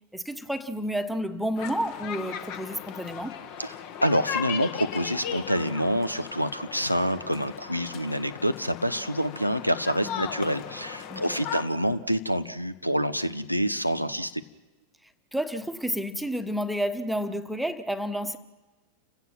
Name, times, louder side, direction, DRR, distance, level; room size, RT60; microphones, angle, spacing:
voice 1, 0.1-3.4 10.0-10.3 11.1-11.4 15.3-18.4, equal, ahead, 1.3 m, -30 dB
sound 1, 1.6-11.6, left 8 dB, 45° left, 1.5 m, -37 dB
voice 2, 4.0-14.4, equal, 90° left, 0.9 m, -27 dB
30.0 x 16.5 x 6.1 m
figure-of-eight pair, 90°, 0 cm